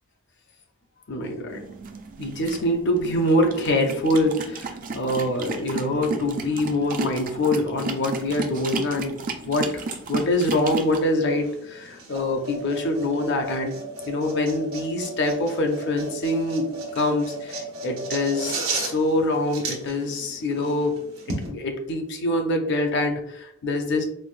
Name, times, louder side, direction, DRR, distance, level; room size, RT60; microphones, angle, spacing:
voice 1, 1.1-1.6 2.2-9.1 9.4-13.7 14.1-20.9 21.5-24.0, left 1 dB, 55° left, 4 dB, 0.6 m, -25 dB
sound 1, 1.5-11.0, right 4 dB, 40° right, 0.3 m, -33 dB
sound 2, 9.8-21.5, right 3 dB, 80° right, 1.0 m, -35 dB
4.6 x 2.0 x 2.5 m, 0.82 s
head